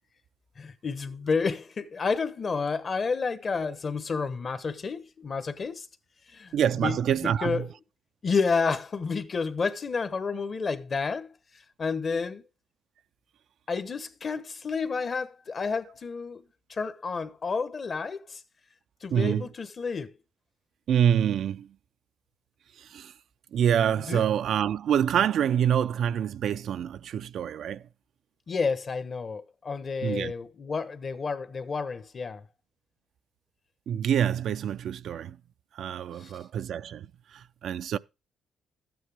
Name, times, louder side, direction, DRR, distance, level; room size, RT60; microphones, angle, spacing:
voice 1, 0.6-5.9 6.3-7.7 8.2-11.3 11.8-12.4 13.7-16.4 16.7-18.4 19.0-20.1 24.0-24.3 28.5-32.4 36.2-36.3, left 5 dB, 40° left, 1.1 m, -30 dB
voice 2, 6.5-7.7 19.1-19.5 20.9-21.7 22.8-23.1 23.5-27.8 30.0-30.3 33.9-35.4 35.7-38.0, right 9 dB, 70° right, 0.5 m, -26 dB
12.5 x 9.2 x 3.5 m
cardioid pair, 95°, 0 cm